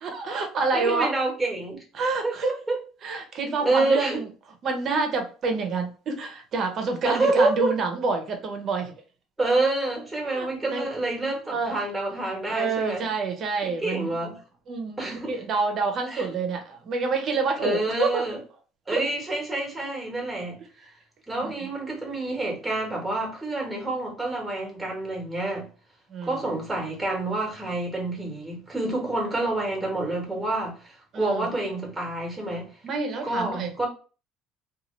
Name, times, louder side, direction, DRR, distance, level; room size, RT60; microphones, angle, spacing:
voice 1, 0.0-1.1 1.9-2.5 3.0-4.3 4.6-8.9 10.3-10.9 11.5-11.8 12.5-14.1 14.7-18.2 18.9-19.1 21.4-21.7 26.1-26.5 31.1-31.5 32.8-33.7, right 4 dB, 45° right, 0.8 m, -28 dB
voice 2, 0.7-1.8 2.2-2.8 3.6-4.2 7.0-7.8 9.4-13.1 13.6-14.3 15.0-15.3 16.1-16.3 17.6-18.4 18.9-20.6 21.3-25.7 26.2-32.7 33.2-33.9, right 2 dB, 10° right, 1.2 m, -27 dB
2.7 x 2.4 x 3.1 m
cardioid pair, 130°, 0 cm